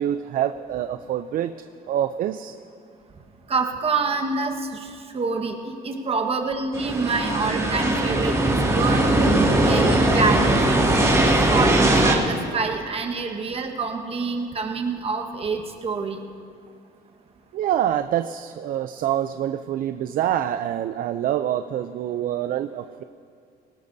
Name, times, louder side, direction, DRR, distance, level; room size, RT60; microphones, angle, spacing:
voice 1, 0.0-1.6 1.9-2.6 17.5-23.0, right 11 dB, 55° right, 10 dB, 0.4 m, -26 dB
voice 2, 3.5-16.2, right 4 dB, 35° right, 3 dB, 1.4 m, -27 dB
sound 1, 6.7-12.2, right 1 dB, 15° right, 2.3 m, -19 dB
19.0 x 18.0 x 2.7 m, 2.3 s
cardioid pair, 110°, 17 cm